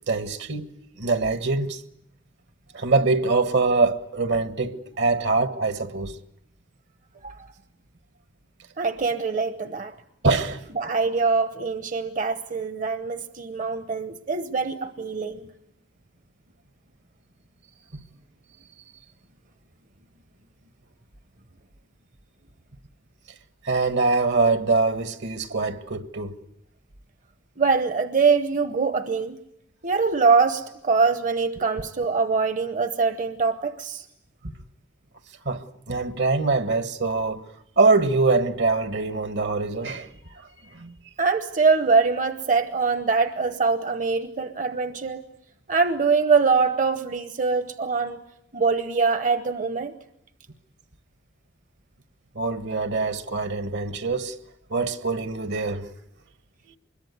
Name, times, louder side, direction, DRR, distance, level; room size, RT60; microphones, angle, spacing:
voice 1, 0.1-0.6 1.0-1.8 2.7-6.1 10.2-10.6 17.9-18.0 23.6-26.3 35.4-37.4 37.8-40.9 52.3-54.3 54.7-55.9 56.7-56.8, right 3 dB, 65° right, 1.6 m, -24 dB
voice 2, 8.8-10.0 10.7-15.5 27.6-29.4 29.8-34.1 41.2-45.2 45.7-48.2 48.5-49.9, right 4 dB, 45° right, 1.0 m, -23 dB
25.0 x 22.0 x 9.5 m
head